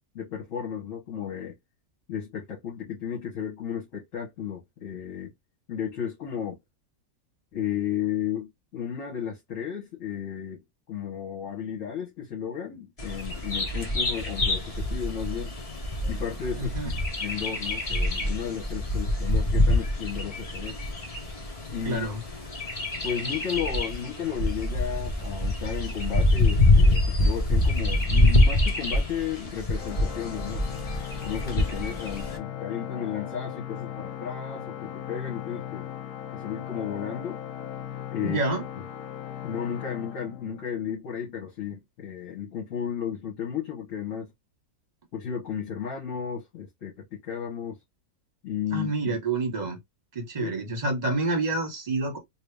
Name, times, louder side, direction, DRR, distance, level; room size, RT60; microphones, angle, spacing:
voice 1, 0.1-1.5 2.1-5.3 5.7-6.6 7.5-10.6 10.9-15.5 16.0-16.9 17.2-20.8 21.7-22.1 23.0-30.6 31.2-35.9 36.3-37.4 38.1-38.4 39.4-44.3 45.1-47.8 48.4-49.2 50.4-50.5, left 8 dB, 60° left, 1.6 m, -34 dB
Bird vocalization bird call bird song, 13.0-32.4, left 1 dB, 30° left, 1.0 m, -25 dB
voice 2, 16.6-16.9 21.8-22.2 38.2-38.6 48.7-49.8 50.1-52.2, right 2 dB, 30° right, 1.3 m, -28 dB
Organ, 29.7-40.9, left 10 dB, 80° left, 1.2 m, -38 dB
3.1 x 2.7 x 3.3 m
omnidirectional pair, 1.6 m